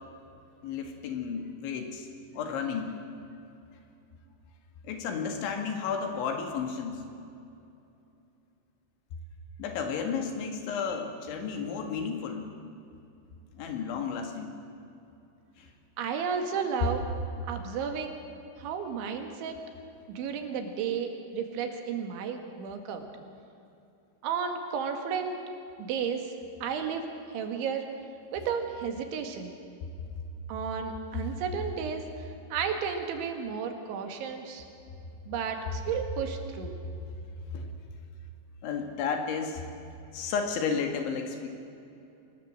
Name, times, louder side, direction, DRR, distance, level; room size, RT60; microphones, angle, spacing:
voice 1, 0.6-2.1 2.3-3.0 4.8-7.1 9.6-12.5 13.5-14.5 15.6-15.7 37.5-37.7 38.6-39.6 40.1-41.5, left 6 dB, 85° left, 4 dB, 4.5 m, -32 dB
voice 2, 16.0-17.0 17.5-18.2 18.6-19.6 20.1-23.1 24.2-25.4 25.8-26.3 26.6-27.9 28.3-29.5 30.5-34.6 35.3-36.8, right 6 dB, 85° right, 5 dB, 4.3 m, -33 dB
24.5 x 20.0 x 7.8 m, 2.7 s
omnidirectional pair, 5.2 m